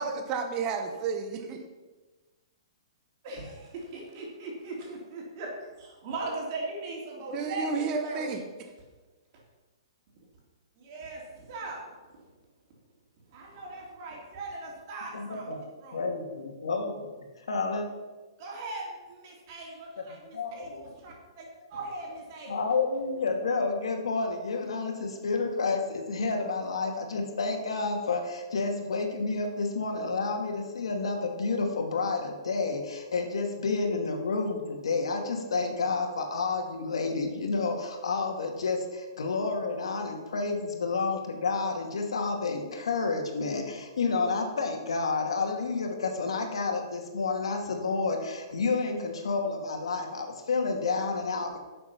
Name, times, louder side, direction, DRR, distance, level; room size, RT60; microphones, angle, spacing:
voice 1, 0.0-1.6 7.3-8.4, right 5 dB, 25° right, 4 dB, 1.0 m, -31 dB
voice 2, 3.2-5.5 5.8-8.3 10.8-11.8 13.3-15.5 15.8-16.1 18.4-22.7, right 2 dB, 40° right, -2 dB, 3.4 m, -39 dB
voice 3, 15.1-15.6 15.9-17.1 17.5-17.9 20.3-20.8 22.5-51.6, left 4 dB, 90° left, 3 dB, 2.2 m, -30 dB
11.0 x 6.7 x 5.9 m, 1.2 s
hypercardioid pair, 160°, 3 cm